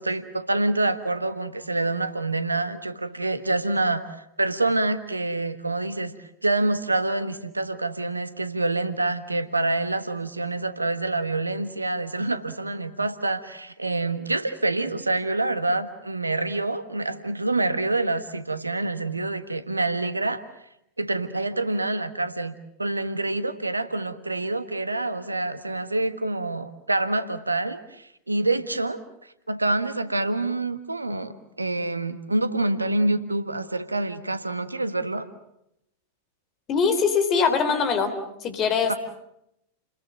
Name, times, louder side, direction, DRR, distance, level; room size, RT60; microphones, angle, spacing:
voice 1, 0.0-6.1 6.4-20.4 21.0-29.0 29.5-35.2 38.9-39.0, right 2 dB, 80° right, 12 dB, 1.4 m, -26 dB
voice 2, 36.7-38.1 38.4-39.0, left 5 dB, 30° left, 9 dB, 3.8 m, -22 dB
30.0 x 21.0 x 7.5 m, 0.79 s
figure-of-eight pair, 90°, 0 cm